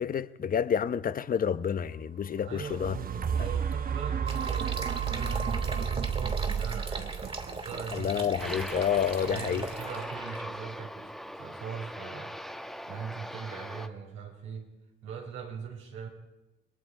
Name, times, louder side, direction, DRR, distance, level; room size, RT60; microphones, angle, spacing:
voice 1, 0.0-3.0 7.9-9.7, left 8 dB, 45° left, 0.9 m, -29 dB
sound 1, 2.4-10.5 11.0-11.1, right 7 dB, 45° right, 1.0 m, -33 dB
voice 2, 2.4-8.8 9.3-12.4 12.9-14.7 15.0-16.1, right 6 dB, 90° right, 5.7 m, -41 dB
sound 2, 4.3-10.4, right 3 dB, 30° right, 2.9 m, -39 dB
Aircraft, 8.4-13.9, equal, ahead, 1.2 m, -41 dB
28.0 x 21.0 x 4.9 m
cardioid pair, 90°, 20 cm